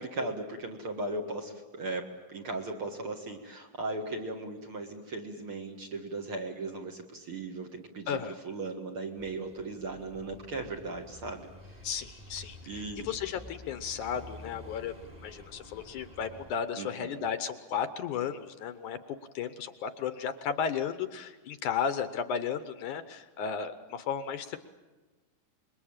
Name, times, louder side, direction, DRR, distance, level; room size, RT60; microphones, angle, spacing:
voice 1, 0.0-8.2 8.4-11.8 12.7-13.1 16.8-17.2, right 2 dB, 45° right, 3 dB, 2.2 m, -37 dB
voice 2, 8.1-8.4 11.8-14.9 15.2-19.0 19.3-24.6, left 7 dB, 70° left, 11 dB, 2.2 m, -34 dB
sound 1, 9.2-16.5, left 1 dB, 15° right, 2.1 m, -50 dB
26.5 x 22.0 x 8.9 m, 1.2 s
omnidirectional pair, 4.0 m